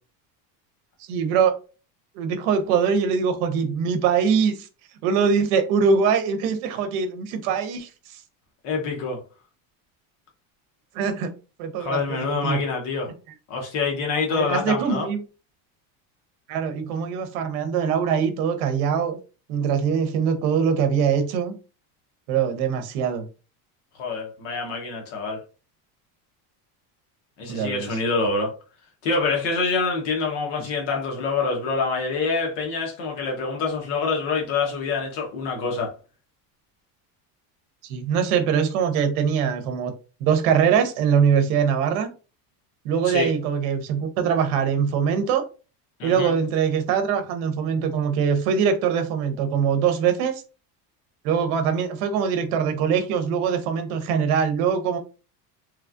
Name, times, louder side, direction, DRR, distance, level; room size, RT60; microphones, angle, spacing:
voice 1, 1.1-1.5 2.1-4.7 5.0-8.2 10.9-11.3 11.6-12.6 14.3-15.2 16.5-19.2 19.5-21.5 22.3-23.2 27.5-27.9 30.6-30.7 37.8-39.9 40.2-42.1 42.8-45.5 46.0-50.4 51.2-55.0, right 7 dB, 75° right, 0.8 m, -22 dB
voice 2, 8.6-9.2 11.8-13.1 13.5-15.1 24.0-25.4 27.4-28.5 29.0-35.9 38.3-38.4 43.0-43.3 46.0-46.3, left 4 dB, 65° left, 1.0 m, -26 dB
3.1 x 2.3 x 2.4 m
cardioid pair, 170°, 44 cm